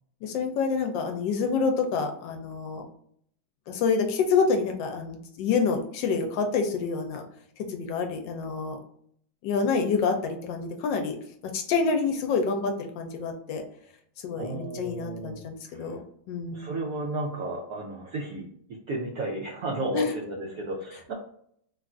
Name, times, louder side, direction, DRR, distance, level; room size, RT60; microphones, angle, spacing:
voice 1, 0.2-2.9 3.7-7.2 7.6-8.8 9.4-11.2 11.5-13.6 14.2-16.7 19.9-20.1, left 5 dB, 75° left, 4 dB, 1.2 m, -27 dB
voice 2, 14.4-16.0 16.5-21.1, right 1 dB, 75° right, -2 dB, 0.8 m, -33 dB
3.4 x 2.4 x 2.4 m, 0.66 s
omnidirectional pair, 2.1 m